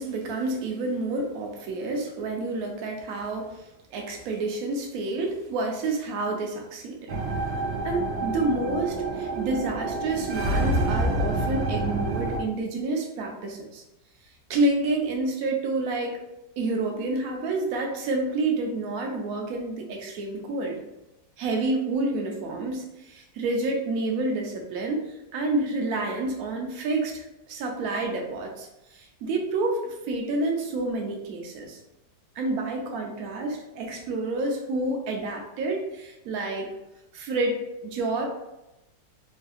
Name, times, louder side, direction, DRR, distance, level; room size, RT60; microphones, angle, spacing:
voice 1, 0.0-3.5 3.9-7.2 7.8-13.8 14.5-16.2 16.6-20.8 21.4-25.1 25.3-27.2 27.5-28.7 29.2-29.8 30.1-31.8 32.4-36.7 37.1-38.3, right 2 dB, 65° right, 2 dB, 0.9 m, -29 dB
sound 1, 7.1-12.4, right 2 dB, 85° right, 1.3 m, -27 dB
3.3 x 2.6 x 2.4 m, 0.93 s
omnidirectional pair, 2.0 m